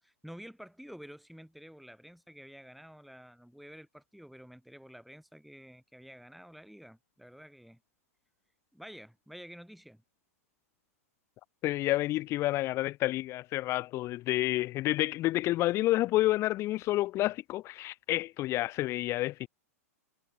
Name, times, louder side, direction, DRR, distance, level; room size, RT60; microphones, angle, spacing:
voice 1, 0.0-7.8 8.7-10.0, equal, ahead, 7.8 m, -50 dB
voice 2, 11.6-19.5, left 16 dB, 35° left, 0.7 m, -29 dB
hypercardioid pair, 125°, 8 cm